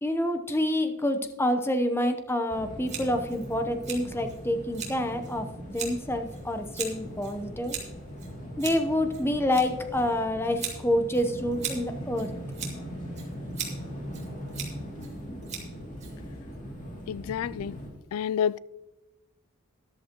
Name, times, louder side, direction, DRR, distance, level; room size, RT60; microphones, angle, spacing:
voice 1, 0.0-7.8 8.6-12.3, left 1 dB, 10° left, 0.8 m, -27 dB
sound 1, 2.5-17.9, equal, 40° left, 2.7 m, -40 dB
Scissors, 2.9-16.6, right 6 dB, 35° right, 2.4 m, -41 dB
voice 2, 17.1-17.7 18.1-18.6, left 8 dB, 80° left, 0.3 m, -29 dB
13.5 x 11.0 x 3.0 m
head